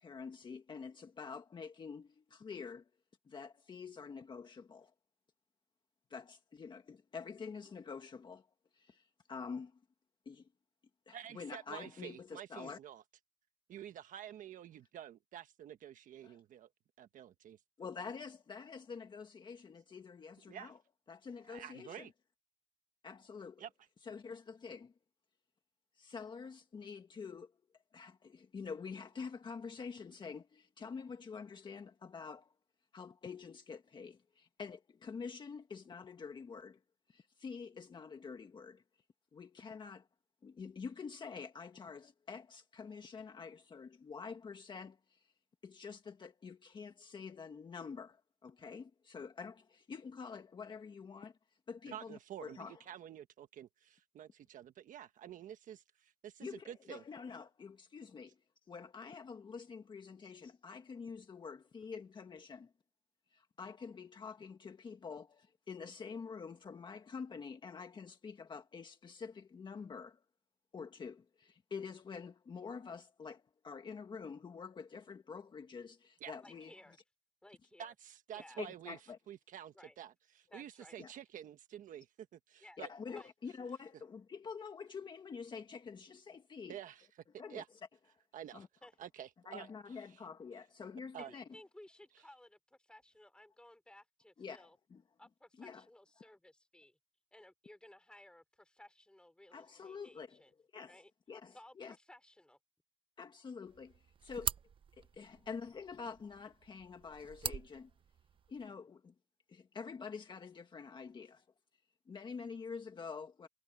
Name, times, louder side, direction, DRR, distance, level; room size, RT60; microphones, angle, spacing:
voice 1, 0.0-2.9 3.3-4.9 6.1-8.5 8.7-9.8 10.2-10.5 11.1-12.8 16.2-16.4 17.8-20.8 21.1-22.1 23.0-23.7 24.0-24.9 25.9-27.5 27.9-32.5 32.9-36.8 37.1-38.8 39.3-40.1 40.4-45.3 45.6-51.4 51.7-52.8 56.4-58.3 58.7-62.7 63.3-70.2 70.7-77.0 78.6-79.2 81.0-81.1 82.8-86.8 87.4-87.6 88.5-88.7 89.4-91.4 94.4-95.0 95.6-95.8 96.2-96.3 99.5-100.4 100.7-101.0 101.3-102.0 103.2-104.5 105.0-107.9 108.5-109.1 109.5-111.5 112.1-113.5, left 5 dB, 25° left, 1.7 m, -47 dB
voice 2, 11.1-13.0 13.7-16.7 17.0-17.6 20.5-20.7 21.5-22.1 23.6-23.7 51.9-57.0 76.2-76.3 77.8-79.0 79.3-82.9 86.7-87.1 87.5-87.7 88.3-88.7 89.0-90.0 91.1-91.3, right 10 dB, 45° right, 1.3 m, -49 dB
voice 3, 76.4-77.0 77.4-77.9 78.3-78.6 79.7-80.0 80.5-81.0 82.6-82.8 83.1-83.3 88.8-88.9 91.2-94.8 95.2-97.0 97.3-100.5 100.9-101.1 101.5-102.6, left 1 dB, 5° left, 4.9 m, -59 dB
sound 1, 103.7-108.7, right 7 dB, 30° right, 0.7 m, -45 dB
cardioid pair, 145°, 18 cm